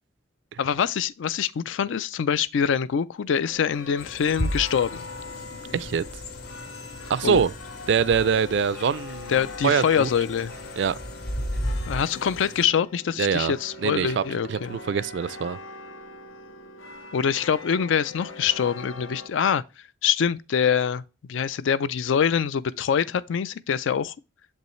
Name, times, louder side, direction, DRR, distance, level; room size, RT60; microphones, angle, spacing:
voice 1, 0.6-5.0 7.2-7.4 9.3-10.5 11.9-14.8 17.1-19.6 20.0-21.0 21.3-24.1, left 7 dB, 70° left, 0.4 m, -24 dB
sound 1, 3.4-19.3, left 4 dB, 85° left, 0.9 m, -42 dB
sound 2, 4.0-12.7, equal, 50° left, 1.1 m, -35 dB
voice 2, 5.7-6.0 7.1-7.5 7.9-9.3 9.6-10.1 10.8-11.0 13.2-13.5 13.8-14.2 14.5-15.6, right 6 dB, 60° right, 0.3 m, -23 dB
6.9 x 5.3 x 3.1 m
head